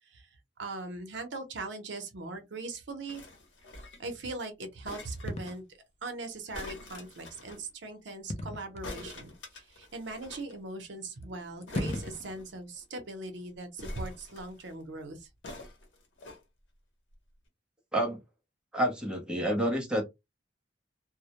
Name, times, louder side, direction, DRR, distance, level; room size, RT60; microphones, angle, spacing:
voice 1, 0.6-3.2 4.0-5.6 6.0-15.3, right 2 dB, 70° right, 0.7 m, -40 dB
sound 1, 3.1-4.1 4.8-5.6 6.5-7.6 8.8-10.5 10.8-10.9 11.1-11.2 11.7-12.8 13.8-14.7 15.4-16.4 17.1-17.2, left 2 dB, 80° left, 0.8 m, -45 dB
sound 2, 5.3-5.6 8.3-8.9 9.8-9.9 11.2-11.3 11.6-12.4, left 1 dB, 35° left, 0.4 m, -35 dB
voice 2, 18.7-20.0, right 1 dB, 5° right, 0.6 m, -28 dB
2.1 x 2.0 x 2.8 m
head